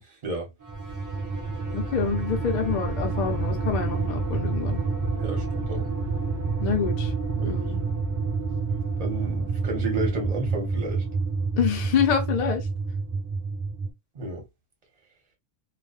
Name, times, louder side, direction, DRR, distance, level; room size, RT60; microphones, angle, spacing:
sound 1, 0.6-13.9, right 4 dB, 20° right, 0.6 m, -28 dB
voice 1, 1.7-4.8 6.6-7.1 7.4-7.8 11.6-12.7, left 7 dB, 50° left, 0.7 m, -26 dB
voice 2, 5.2-5.9 7.4-7.6 9.0-11.0 14.1-14.4, right 2 dB, 40° right, 1.0 m, -32 dB
2.4 x 2.2 x 2.4 m
omnidirectional pair, 1.1 m